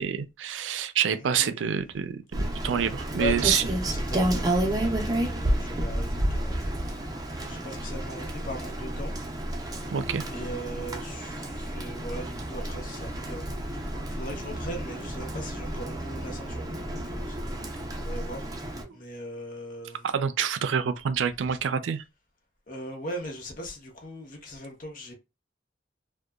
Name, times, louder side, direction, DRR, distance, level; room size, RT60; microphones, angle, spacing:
voice 1, 0.0-3.7 9.9-10.2 18.9-19.0 20.0-22.0, right 7 dB, 90° right, 0.4 m, -27 dB
voice 2, 1.2-1.7 3.1-6.8 7.4-9.1 10.3-17.4 17.9-18.5 18.9-20.1 22.7-25.1, equal, 50° left, 0.7 m, -39 dB
Rain, 2.3-18.8, right 1 dB, 20° right, 0.5 m, -31 dB
2.7 x 2.2 x 2.3 m
head